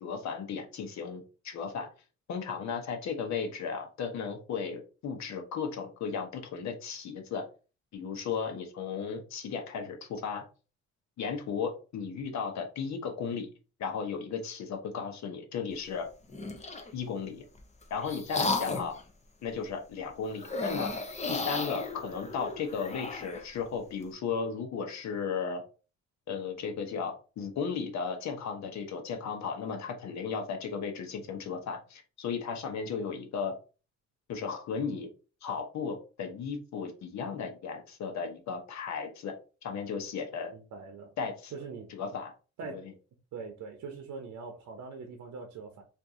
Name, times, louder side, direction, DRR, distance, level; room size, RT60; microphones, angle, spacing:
voice 1, 0.0-1.9 2.3-7.4 7.9-10.4 11.2-13.5 13.8-16.1 16.9-17.4 17.9-19.0 19.4-20.9 21.3-25.6 26.3-33.5 34.3-35.1 35.4-39.3 39.6-40.5 41.2-41.5 41.9-42.3 42.7-42.8, left 6 dB, 65° left, 0.9 m, -35 dB
sound 1, 16.3-16.9 17.6-19.0 20.4-23.4, left 3 dB, 25° left, 0.6 m, -34 dB
voice 2, 40.5-41.1 41.5-41.9 42.6-42.9 43.3-45.8, right 5 dB, 70° right, 0.8 m, -42 dB
2.6 x 2.6 x 3.6 m
cardioid pair, 90°, 30 cm